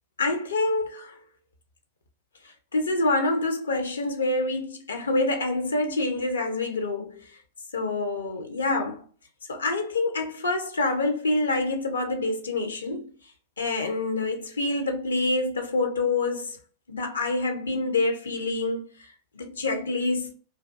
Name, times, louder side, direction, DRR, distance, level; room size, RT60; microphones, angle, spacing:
voice 1, 0.2-1.1 2.7-7.1 7.7-9.0 9.5-13.1 13.6-16.5 16.9-18.8 19.4-20.3, left 2 dB, 70° left, 0.5 m, -26 dB
2.4 x 2.3 x 2.5 m
figure-of-eight pair, 90°, 0 cm